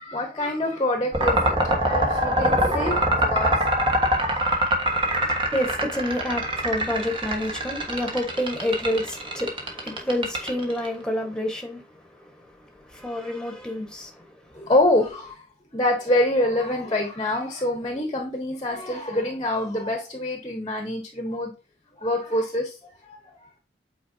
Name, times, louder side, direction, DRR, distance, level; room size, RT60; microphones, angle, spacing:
voice 1, 0.0-3.6 3.9-4.5 14.5-15.4 15.7-21.5 22.0-23.4, left 1 dB, 25° left, 1.1 m, -26 dB
sound 1, 1.1-10.9, right 1 dB, 30° right, 1.5 m, -23 dB
voice 2, 4.9-14.7, left 1 dB, 5° left, 1.5 m, -29 dB
8.6 x 4.6 x 2.8 m
head